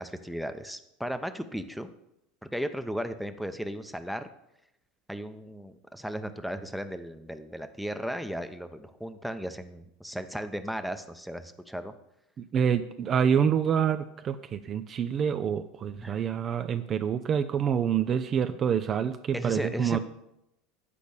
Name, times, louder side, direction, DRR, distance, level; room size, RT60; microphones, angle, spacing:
voice 1, 0.0-1.9 2.4-4.3 5.1-11.9 16.0-16.2 19.3-20.0, equal, ahead, 8 dB, 0.7 m, -35 dB
voice 2, 12.4-20.0, right 8 dB, 35° right, 10 dB, 0.5 m, -27 dB
8.4 x 5.1 x 7.0 m, 0.83 s
hypercardioid pair, 80°, 0 cm